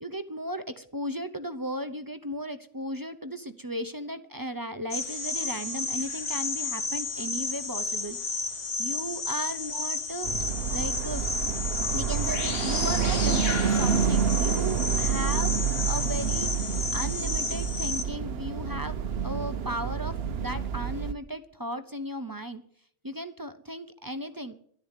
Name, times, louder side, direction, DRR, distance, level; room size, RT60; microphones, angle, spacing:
voice 1, 0.0-8.2 8.8-10.3 10.7-11.2 11.9-15.6 15.9-22.6 23.0-24.5, equal, 20° right, 9 dB, 0.7 m, -36 dB
sound 1, 4.9-18.0, left 3 dB, 80° left, 1.9 m, -32 dB
sound 2, 10.2-21.1, right 7 dB, 60° right, 1.0 m, -28 dB
12.0 x 10.5 x 9.0 m, 0.62 s
omnidirectional pair, 1.2 m